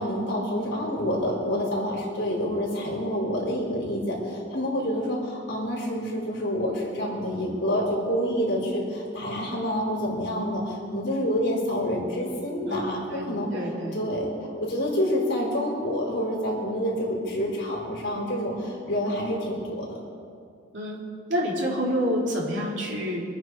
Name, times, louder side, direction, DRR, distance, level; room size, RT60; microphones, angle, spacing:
voice 1, 0.0-13.5 13.9-14.3 14.6-20.0, equal, 65° left, -3 dB, 4.4 m, -28 dB
voice 2, 12.7-14.0 20.7-21.0 21.3-23.2, equal, 65° right, -4 dB, 3.6 m, -28 dB
26.0 x 9.6 x 4.8 m, 2.4 s
head